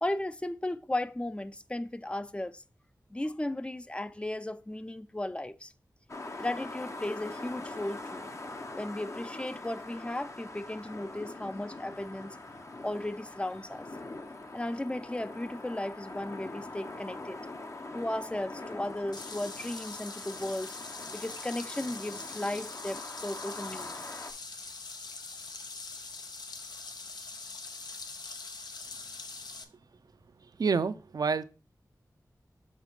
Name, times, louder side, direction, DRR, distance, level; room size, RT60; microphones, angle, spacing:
voice 1, 0.0-2.6 3.1-5.7 6.4-8.3 8.8-12.4 12.8-13.9 14.5-17.4 17.9-20.7 21.1-24.0, left 1 dB, 15° left, 0.4 m, -35 dB
sound 1, 6.1-24.3, left 2 dB, 45° left, 0.7 m, -43 dB
sound 2, 19.1-29.6, left 4 dB, 85° left, 0.7 m, -43 dB
voice 2, 30.6-31.5, right 5 dB, 70° right, 0.5 m, -28 dB
6.6 x 3.1 x 4.9 m
wide cardioid pair, 60°, 7 cm